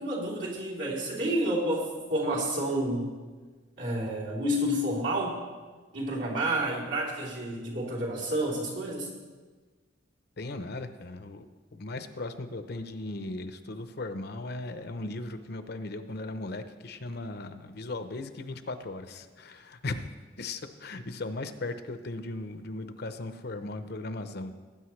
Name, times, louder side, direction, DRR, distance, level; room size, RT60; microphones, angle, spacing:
voice 1, 0.0-3.1 3.8-5.4 5.9-9.1, right 1 dB, 75° right, -5 dB, 3.4 m, -30 dB
voice 2, 10.4-11.5 11.7-20.1 20.4-24.5, left 2 dB, 60° left, 9 dB, 0.7 m, -37 dB
19.0 x 9.0 x 3.2 m, 1.4 s
head